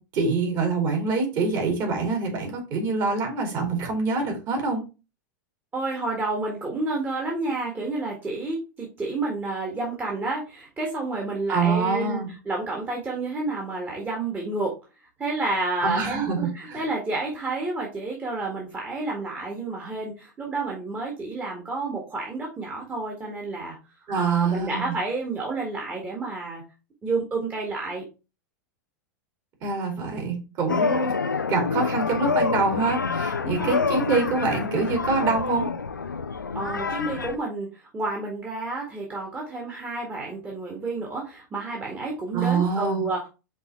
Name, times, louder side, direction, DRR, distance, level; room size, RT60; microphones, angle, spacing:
voice 1, 0.1-4.8 11.5-12.3 15.8-16.8 24.1-25.0 29.6-31.1 31.5-35.7 42.3-43.0, right 4 dB, 40° right, 2 dB, 2.7 m, -25 dB
voice 2, 5.7-14.7 15.2-23.8 24.2-26.6 27.0-28.0 33.4-33.8 36.5-43.3, right 3 dB, 15° right, -2 dB, 1.7 m, -30 dB
sound 1, 30.7-37.4, left 4 dB, 85° left, 0.5 m, -27 dB
5.3 x 4.0 x 4.5 m, 0.30 s
figure-of-eight pair, 90°, 10 cm